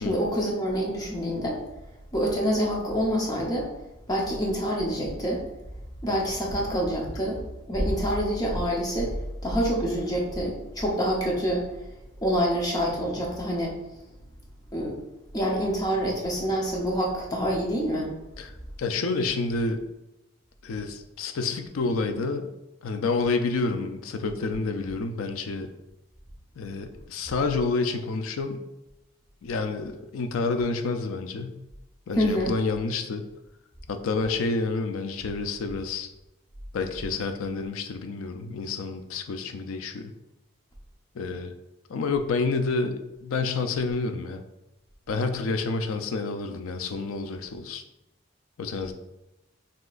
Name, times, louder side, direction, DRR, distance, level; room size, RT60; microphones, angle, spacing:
voice 1, 0.0-1.6 2.1-3.7 4.1-5.4 6.0-7.4 7.7-9.1 9.4-11.6 12.2-13.8 14.7-15.0 15.3-18.1 32.2-32.5, equal, 20° left, -2 dB, 0.7 m, -26 dB
voice 2, 18.8-19.8 20.6-22.5 22.8-25.7 26.6-28.6 29.4-31.5 32.1-33.2 33.9-36.1 36.7-40.1 41.1-41.5 41.9-44.4 45.1-47.8 48.6-48.9, left 3 dB, 85° left, 7 dB, 0.4 m, -29 dB
6.1 x 2.8 x 2.4 m, 0.94 s
head